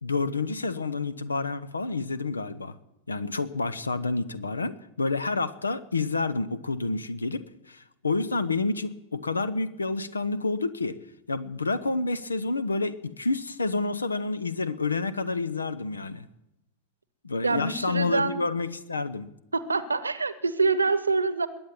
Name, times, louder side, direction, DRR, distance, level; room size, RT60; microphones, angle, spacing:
voice 1, 0.0-2.8 3.1-11.0 11.3-16.3 17.2-19.3, left 3 dB, 75° left, 17 dB, 0.8 m, -29 dB
voice 2, 17.4-18.4 19.5-21.5, right 4 dB, 80° right, 15 dB, 1.0 m, -25 dB
21.5 x 8.8 x 7.5 m, 0.91 s
figure-of-eight pair, 90°, 0 cm